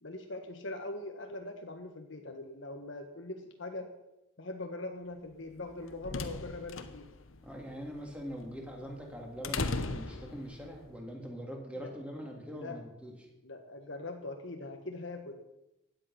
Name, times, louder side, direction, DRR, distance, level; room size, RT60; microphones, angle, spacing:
voice 1, 0.0-3.9 4.4-7.1 12.5-12.8 13.4-15.3, left 2 dB, 70° left, 4 dB, 1.5 m, -41 dB
sound 1, 5.5-10.8, left 3 dB, 85° left, 1.1 m, -39 dB
voice 2, 7.4-13.3, equal, 5° right, 0 dB, 3.1 m, -43 dB
16.5 x 10.5 x 5.9 m, 0.92 s
head